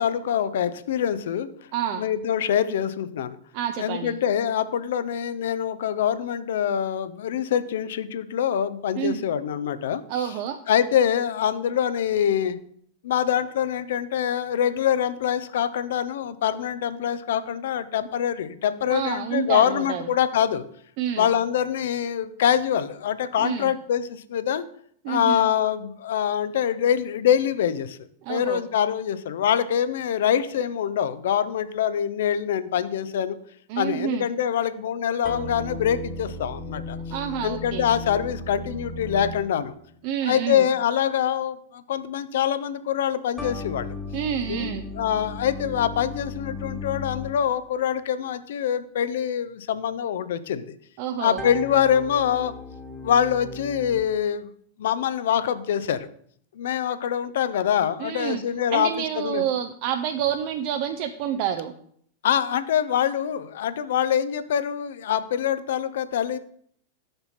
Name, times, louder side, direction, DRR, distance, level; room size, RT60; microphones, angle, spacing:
voice 1, 0.0-1.5 2.0-3.4 3.8-10.0 10.7-12.6 13.0-20.7 21.2-24.6 25.1-28.0 28.3-33.4 33.8-37.0 37.4-39.7 40.2-44.0 44.5-50.7 51.2-52.5 53.0-54.5 54.8-56.1 56.6-58.9 59.2-59.4 62.2-66.4, left 9 dB, 60° left, 13 dB, 0.6 m, -24 dB
voice 2, 1.7-2.1 3.5-4.1 8.9-9.2 10.1-10.6 18.9-20.1 21.0-21.3 23.4-23.7 25.0-25.5 28.2-28.6 33.7-34.3 37.1-37.9 40.0-40.7 44.1-44.9 51.0-51.4 58.0-58.4 58.7-61.7, right 9 dB, 45° right, 7 dB, 0.5 m, -28 dB
sound 1, 35.2-39.9 43.4-47.7 51.4-54.0, left 2 dB, 10° left, 1.3 m, -36 dB
6.8 x 5.7 x 4.1 m, 0.63 s
figure-of-eight pair, 90°, 0 cm